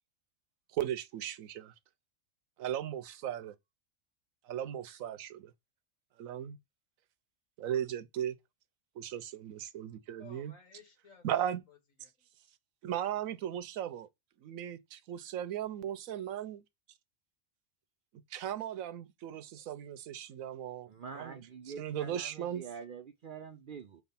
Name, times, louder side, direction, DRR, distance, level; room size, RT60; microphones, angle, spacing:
voice 1, 0.7-1.7 2.6-3.5 4.4-5.5 6.2-6.6 7.6-8.4 9.0-10.5 11.2-11.6 12.8-14.1 14.4-16.6 18.3-21.4 21.8-22.6, right 10 dB, 85° right, 1.1 m, -37 dB
voice 2, 10.2-12.3, left 5 dB, 75° left, 1.9 m, -58 dB
voice 3, 20.9-24.0, right 6 dB, 55° right, 0.6 m, -46 dB
6.3 x 3.5 x 5.7 m
omnidirectional pair, 1.4 m